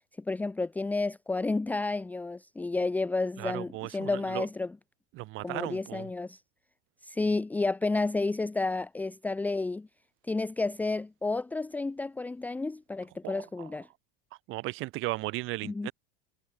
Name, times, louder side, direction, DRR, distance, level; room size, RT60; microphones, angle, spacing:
voice 1, 0.3-4.7 5.4-6.4 7.0-9.9 10.3-13.9 15.6-15.9, left 3 dB, 5° left, 0.8 m, -31 dB
voice 2, 3.4-4.5 5.1-6.1 13.2-13.7 14.5-15.9, right 21 dB, 45° right, 7.0 m, -36 dB
supercardioid pair, 160°, 29 cm